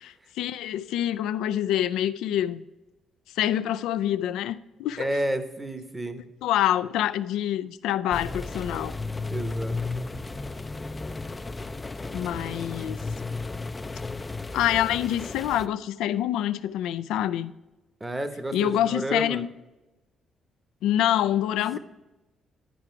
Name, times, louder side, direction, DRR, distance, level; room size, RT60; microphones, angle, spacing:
voice 1, 0.0-2.6 3.4-5.1 6.4-8.9 12.1-13.0 14.5-17.5 18.5-19.5 20.8-21.8, left 11 dB, 90° left, 13 dB, 0.3 m, -26 dB
voice 2, 5.0-6.2 9.3-9.8 18.0-19.4, right 1 dB, 15° right, 9 dB, 0.9 m, -30 dB
sound 1, 8.1-15.7, left 3 dB, 20° left, 0.4 m, -34 dB
11.5 x 4.9 x 4.5 m, 1.0 s
cardioid pair, 90°, 0 cm